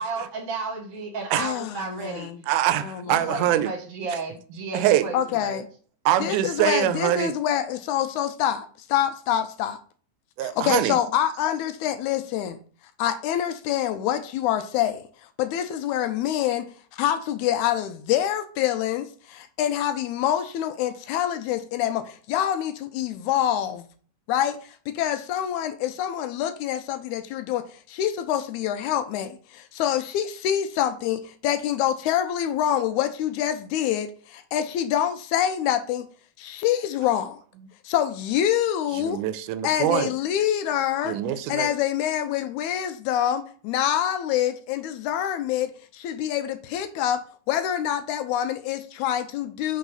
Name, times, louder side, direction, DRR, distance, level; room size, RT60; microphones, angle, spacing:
voice 1, 0.0-2.3 3.1-5.6, right 4 dB, 65° right, 1.7 m, -33 dB
voice 2, 1.4-2.4 2.8-3.4 5.1-5.6 6.2-9.8 10.4-12.6 13.0-15.0 15.4-16.7 16.9-23.9 24.3-36.1 36.4-37.4 37.9-39.2 39.6-41.2 41.5-47.2 47.5-49.8, left 10 dB, 80° left, 1.9 m, -26 dB
voice 3, 2.5-3.7 4.7-5.1 6.1-7.3 10.4-11.0 39.0-40.1 41.0-41.7, right 12 dB, 90° right, 2.1 m, -23 dB
4.6 x 4.0 x 5.4 m
omnidirectional pair, 3.5 m